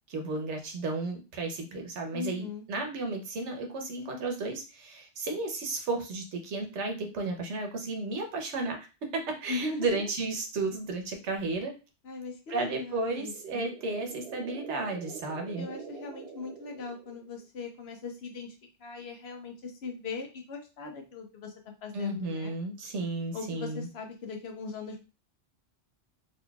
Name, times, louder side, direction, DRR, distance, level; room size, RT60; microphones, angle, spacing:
voice 1, 0.1-11.7 12.5-15.7 21.9-23.9, right 3 dB, 85° right, 4 dB, 1.1 m, -33 dB
voice 2, 2.1-2.6 9.5-10.1 12.0-13.7 15.6-18.5 18.8-21.5 21.8-22.5 23.3-25.0, left 4 dB, 70° left, 3 dB, 1.0 m, -39 dB
sound 1, 13.2-17.5, right 6 dB, 70° right, 0.8 m, -46 dB
4.0 x 2.7 x 2.3 m, 0.31 s
omnidirectional pair, 1.1 m